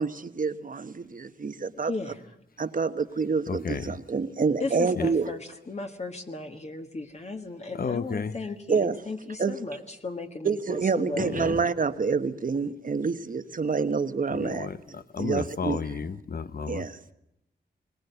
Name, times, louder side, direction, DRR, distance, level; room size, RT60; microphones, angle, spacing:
voice 1, 0.0-1.9 2.6-5.3 8.7-9.0 9.4-9.5 10.4-14.7 15.2-15.8 16.7-17.0, right 5 dB, 45° right, 1.1 m, -27 dB
voice 2, 1.8-2.2 4.6-11.6, left 3 dB, 35° left, 1.5 m, -36 dB
voice 3, 3.5-3.9 5.0-5.1 7.8-8.4 11.2-11.5 14.3-16.9, left 5 dB, 55° left, 0.9 m, -32 dB
22.0 x 18.5 x 8.1 m
wide cardioid pair, 90°, 19 cm